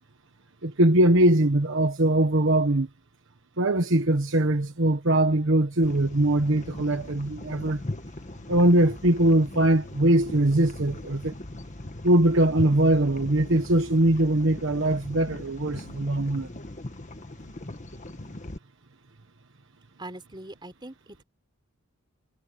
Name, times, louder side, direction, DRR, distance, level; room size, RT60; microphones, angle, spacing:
voice 1, 0.6-2.9 3.6-7.8 8.5-11.3 12.0-16.5, right 1 dB, 60° right, 1.3 m, -21 dB
sound 1, 5.8-18.6, left 1 dB, 35° left, 1.4 m, -39 dB
voice 2, 20.0-21.2, right 1 dB, 20° right, 4.7 m, -42 dB
head